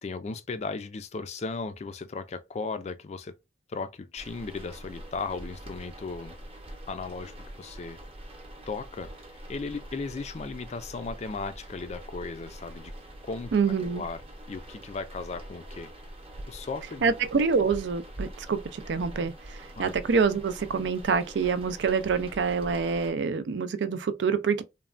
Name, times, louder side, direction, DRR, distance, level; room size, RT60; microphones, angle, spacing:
voice 1, 0.0-3.4 3.7-6.4 6.9-8.0 8.7-12.9 13.2-13.5 13.9-15.9 16.5-17.1 19.8-19.9, left 4 dB, 40° left, 0.3 m, -36 dB
sound 1, 4.2-23.1, right 1 dB, 35° right, 0.8 m, -44 dB
voice 2, 13.5-14.0 17.0-24.6, right 5 dB, 75° right, 0.4 m, -26 dB
3.2 x 2.1 x 2.4 m
head